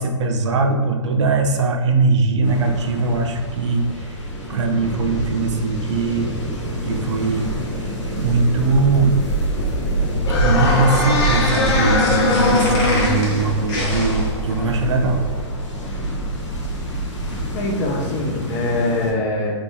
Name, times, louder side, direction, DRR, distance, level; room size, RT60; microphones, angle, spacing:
voice 1, 0.0-4.2 4.5-6.3 6.8-9.2 10.3-15.2, right 3 dB, 75° right, 4 dB, 0.5 m, -21 dB
sound 1, 2.4-19.1, right 1 dB, 85° left, 1.1 m, -26 dB
sound 2, 8.1-13.1, left 2 dB, 60° left, 0.8 m, -21 dB
sound 3, 10.3-15.3, left 1 dB, 40° left, 1.1 m, -30 dB
voice 2, 17.5-19.6, left 2 dB, 20° left, -3 dB, 0.5 m, -23 dB
3.6 x 3.1 x 2.6 m, 1.4 s
hypercardioid pair, 155°, 15 cm